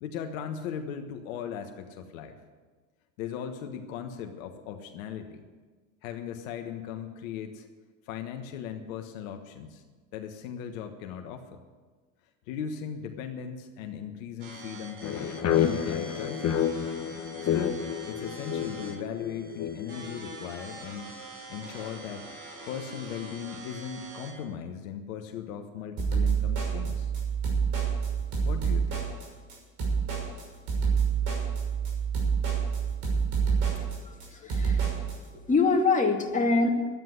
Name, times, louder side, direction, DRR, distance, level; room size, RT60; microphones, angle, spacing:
voice 1, 0.0-2.4 3.2-5.4 6.0-7.7 8.1-9.8 10.1-11.6 12.5-15.3 15.6-16.6 17.5-21.1 21.5-22.3 22.7-27.1 28.4-29.0, left 8 dB, 75° left, 5 dB, 1.4 m, -38 dB
sound 1, 14.4-24.4, right 2 dB, 85° right, 4.5 m, -44 dB
sound 2, 15.0-20.5, left 9 dB, 40° left, 1.3 m, -30 dB
sound 3, 26.0-35.2, right 6 dB, 60° right, 6.2 m, -27 dB
voice 2, 33.8-34.9 35.5-36.7, left 3 dB, 20° left, 1 dB, 2.5 m, -25 dB
12.5 x 9.7 x 9.4 m, 1.4 s
hypercardioid pair, 90°, 41 cm